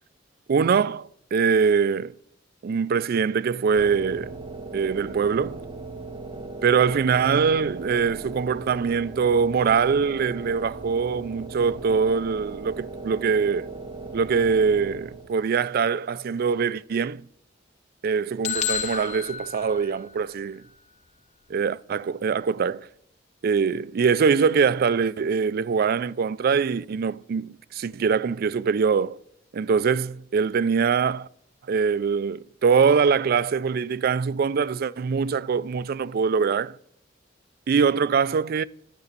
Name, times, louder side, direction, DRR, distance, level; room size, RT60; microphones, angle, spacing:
voice 1, 0.5-2.1 2.6-4.3 4.7-5.6 6.6-13.7 14.1-17.3 18.0-20.6 21.5-22.9 23.4-29.2 29.5-31.3 31.7-36.8 37.7-38.6, right 6 dB, 50° right, 0.4 m, -23 dB
sound 1, 3.8-15.5, right 3 dB, 25° right, 1.1 m, -38 dB
sound 2, 18.4-20.4, left 8 dB, 40° left, 0.5 m, -30 dB
12.0 x 6.9 x 6.7 m
head